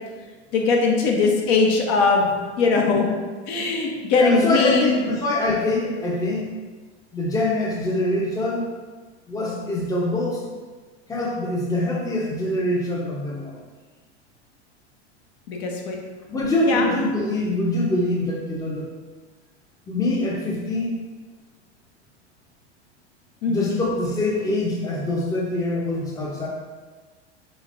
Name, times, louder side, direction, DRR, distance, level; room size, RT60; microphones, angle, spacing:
voice 1, 0.5-3.1 3.5-5.0 15.5-16.0 16.6-16.9 23.4-23.7, left 4 dB, 60° left, 0 dB, 0.9 m, -20 dB
voice 2, 4.1-6.5 7.1-8.7 9.3-10.5 11.1-13.6 16.3-18.9 19.9-20.9 23.5-26.5, left 2 dB, 10° left, -3 dB, 0.7 m, -24 dB
5.2 x 3.3 x 2.5 m, 1.4 s
hypercardioid pair, 105°, 35 cm